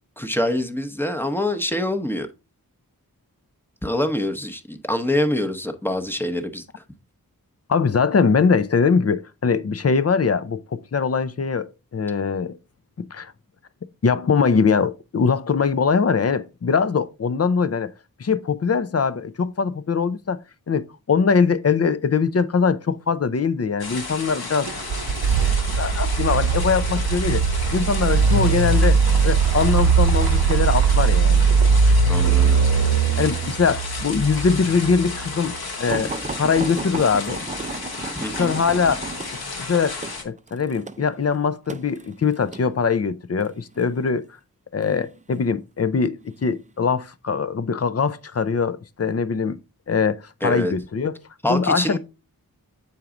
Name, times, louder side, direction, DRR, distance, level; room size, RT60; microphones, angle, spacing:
voice 1, 0.2-2.3 3.8-6.8 32.1-32.7 38.2-38.5 50.4-50.7 51.4-52.0, left 1 dB, 5° left, 0.8 m, -25 dB
voice 2, 7.7-12.6 13.0-13.3 14.0-17.9 18.2-20.4 20.7-24.7 25.7-27.4 27.7-31.4 32.2-32.4 33.2-36.1 36.4-37.4 38.4-39.0 39.6-44.3 44.7-46.1 46.4-49.6 49.9-51.2 51.5-52.0, left 5 dB, 45° left, 0.5 m, -22 dB
sound 1, 23.8-40.2, left 3 dB, 85° left, 1.3 m, -33 dB
sound 2, 24.7-35.5, right 5 dB, 80° right, 0.7 m, -20 dB
sound 3, 35.9-42.7 43.4-43.9 44.8-45.5 46.2-46.4 46.8-46.9, right 4 dB, 20° right, 0.4 m, -34 dB
7.1 x 4.6 x 3.7 m
wide cardioid pair, 80°, 36 cm